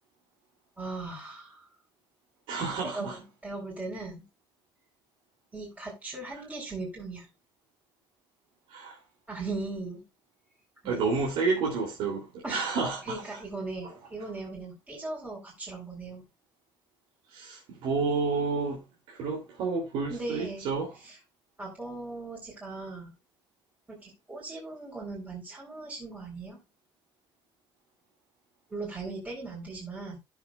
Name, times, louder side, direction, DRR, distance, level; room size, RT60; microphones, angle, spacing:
voice 1, 0.8-1.7 2.8-4.2 5.5-7.3 9.3-10.0 10.8-11.0 12.4-12.7 13.0-16.2 20.1-20.7 21.0-21.1 21.6-23.1 23.9-26.6 28.7-30.2, right 3 dB, 15° right, 4.5 m, -38 dB
voice 2, 2.5-3.2 6.3-6.4 8.7-9.0 10.8-13.2 17.3-20.9, right 4 dB, 90° right, 3.3 m, -30 dB
15.5 x 7.1 x 2.5 m
cardioid pair, 140°, 9 cm